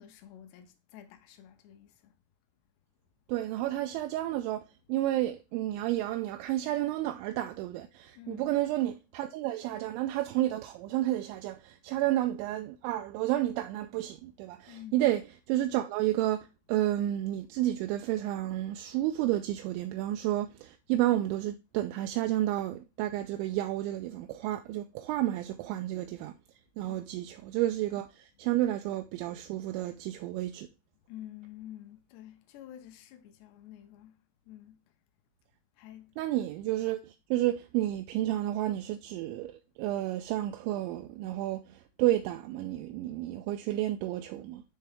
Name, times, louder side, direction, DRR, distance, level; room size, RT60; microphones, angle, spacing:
voice 1, 0.0-2.1 8.2-8.5 14.7-15.0 26.8-27.1 31.1-34.1 34.5-34.8 35.8-36.1, left 12 dB, 75° left, 2.6 m, -49 dB
voice 2, 3.3-4.6 4.9-15.2 15.5-26.3 26.8-30.7 36.2-44.6, right 14 dB, 85° right, 2.7 m, -31 dB
9.8 x 3.3 x 3.5 m
omnidirectional pair, 5.7 m